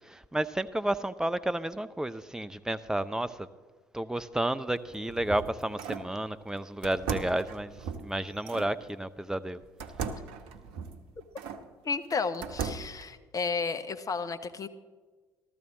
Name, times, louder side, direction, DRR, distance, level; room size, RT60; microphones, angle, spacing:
voice 1, 0.1-3.5 3.9-7.7 8.0-9.6, right 1 dB, 5° right, 14 dB, 0.5 m, -31 dB
sound 1, 4.8-6.1 6.8-8.7 9.8-11.6 12.1-13.0, right 6 dB, 60° right, 0.9 m, -37 dB
voice 2, 11.8-14.7, left 4 dB, 30° left, 10 dB, 0.9 m, -32 dB
14.0 x 13.5 x 3.8 m, 1.4 s
figure-of-eight pair, 55°, 11 cm